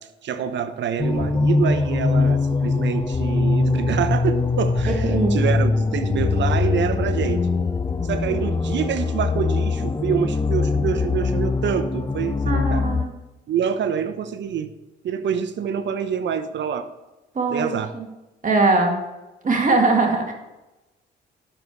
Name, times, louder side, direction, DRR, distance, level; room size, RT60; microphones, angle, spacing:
voice 1, 0.2-7.5 8.0-12.8 13.5-14.7 15.0-16.9 17.5-17.9, right 7 dB, 65° right, 11 dB, 1.0 m, -26 dB
sound 1, 1.0-13.0, left 3 dB, 20° left, 0.7 m, -22 dB
voice 2, 4.9-5.5 12.4-13.1 17.3-18.1 18.4-19.0 19.4-20.3, right 3 dB, 40° right, 2 dB, 2.2 m, -21 dB
12.0 x 6.8 x 4.8 m, 1.0 s
supercardioid pair, 70°, 20 cm